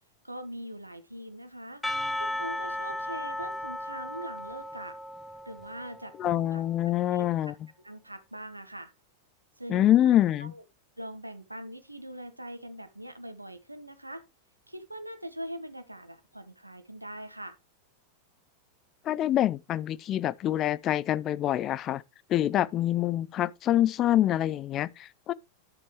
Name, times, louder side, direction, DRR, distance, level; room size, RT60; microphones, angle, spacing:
voice 1, 0.2-1.8 2.2-5.0 5.4-7.5 7.8-8.9 9.6-10.6 11.0-14.2 14.7-17.6, right 1 dB, 85° right, 1.3 m, -42 dB
Percussion / Church bell, 1.8-6.4, left 1 dB, 5° left, 0.9 m, -35 dB
voice 2, 6.2-7.5 9.7-10.5 19.1-22.0 22.3-25.3, left 12 dB, 30° left, 0.5 m, -25 dB
10.5 x 7.5 x 3.2 m
figure-of-eight pair, 90°, 0 cm